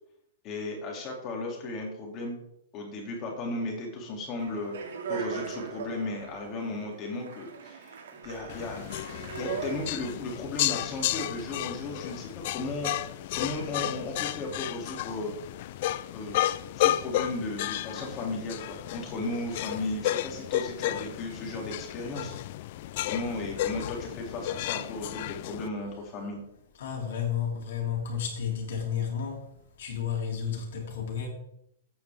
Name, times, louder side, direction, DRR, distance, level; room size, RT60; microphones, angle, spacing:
voice 1, 0.4-2.4 2.7-15.3 15.7-16.4 16.7-22.3 23.0-26.4, left 2 dB, 20° left, 2.6 m, -35 dB
Speech, 4.4-10.2, right 6 dB, 85° right, 2.2 m, -39 dB
sound 1, 8.5-25.7, left 14 dB, 40° left, 0.4 m, -32 dB
voice 2, 26.8-29.5 29.8-31.3, left 8 dB, 55° left, 2.9 m, -32 dB
14.5 x 8.6 x 3.5 m
supercardioid pair, 180°, 0 cm